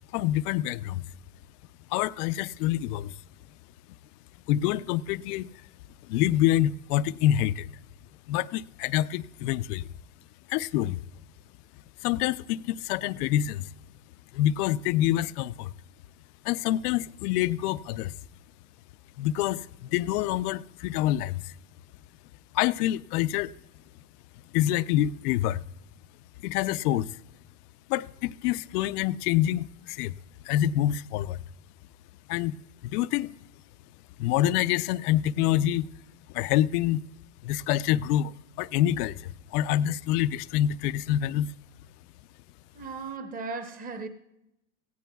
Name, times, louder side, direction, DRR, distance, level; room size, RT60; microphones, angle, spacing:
voice 1, 0.1-1.1 1.9-3.1 4.5-5.5 6.1-7.7 8.3-9.9 10.5-11.0 12.0-13.7 14.3-15.7 16.4-18.1 19.2-21.5 22.5-23.5 24.5-25.6 26.4-27.1 27.9-30.2 30.5-31.4 32.3-32.5 32.8-33.3 34.2-35.9 36.3-37.0 37.4-38.3 38.6-41.5, left 13 dB, 80° left, 0.6 m, -26 dB
voice 2, 42.7-44.1, right 4 dB, 20° right, 0.8 m, -36 dB
18.0 x 15.5 x 2.3 m
supercardioid pair, 145°, 45 cm